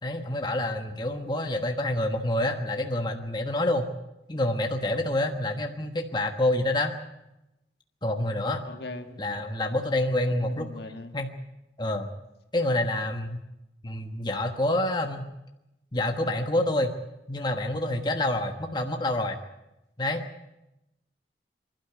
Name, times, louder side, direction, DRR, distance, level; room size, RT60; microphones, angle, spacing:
voice 1, 0.0-3.9 4.3-6.9 8.0-8.6 9.2-10.7 11.1-11.3 11.8-12.1 12.5-13.4 13.8-15.2 15.9-16.9 17.3-19.4 20.0-20.2, left 1 dB, 25° left, 4 dB, 1.3 m, -27 dB
voice 2, 8.6-9.3 10.4-11.2, left 2 dB, 65° left, 6 dB, 1.7 m, -40 dB
26.0 x 12.0 x 9.5 m, 0.92 s
head